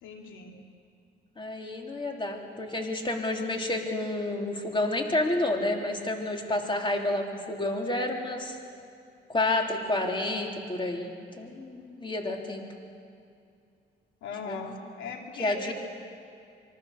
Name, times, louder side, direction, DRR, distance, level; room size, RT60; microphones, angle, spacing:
voice 1, 0.0-0.5 14.2-15.7, left 5 dB, 85° left, 2 dB, 2.6 m, -39 dB
voice 2, 1.4-8.6 9.3-12.6 14.4-14.6 15.4-15.7, left 2 dB, 25° left, 1 dB, 3.5 m, -30 dB
26.5 x 23.5 x 6.8 m, 2.5 s
cardioid pair, 90°, 20 cm